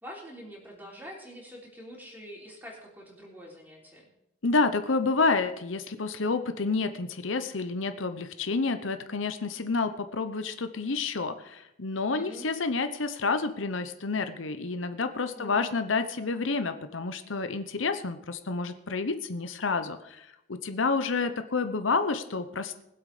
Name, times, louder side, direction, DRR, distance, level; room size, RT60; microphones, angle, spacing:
voice 1, 0.0-4.1 12.1-12.5 15.3-15.9, equal, 10° right, -3 dB, 3.7 m, -45 dB
voice 2, 4.4-22.8, left 4 dB, 85° left, 9 dB, 0.9 m, -29 dB
20.5 x 8.0 x 5.0 m, 0.83 s
head